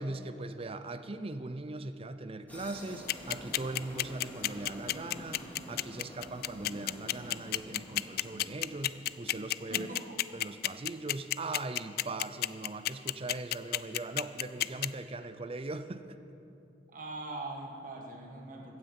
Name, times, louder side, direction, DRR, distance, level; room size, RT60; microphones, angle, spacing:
voice 1, 0.0-9.9 10.3-16.2, right 2 dB, 35° right, 11 dB, 0.6 m, -40 dB
sound 1, 2.5-9.7, equal, 10° left, 2.6 m, -48 dB
sound 2, 3.1-14.9, left 14 dB, 60° left, 0.4 m, -30 dB
voice 2, 9.7-10.2 16.9-18.8, right 2 dB, 50° right, 0 dB, 1.8 m, -42 dB
16.0 x 9.5 x 7.2 m, 2.8 s
head